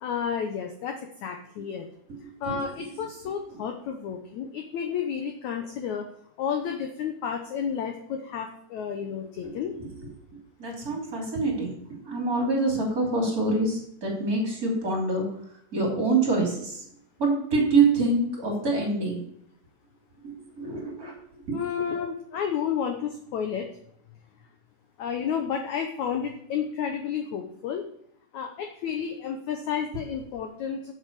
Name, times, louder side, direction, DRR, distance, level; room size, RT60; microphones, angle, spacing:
voice 1, 0.0-1.9 2.4-6.1 6.4-9.7 21.5-23.7 25.0-27.8 28.3-30.9, left 7 dB, 80° left, 4 dB, 1.6 m, -31 dB
voice 2, 9.4-9.9 10.6-11.7 12.0-15.3 15.7-16.8 17.2-19.2 20.2-21.1 21.5-21.6, right 3 dB, 25° right, 0 dB, 3.2 m, -25 dB
8.0 x 7.8 x 6.8 m, 0.70 s
omnidirectional pair, 4.6 m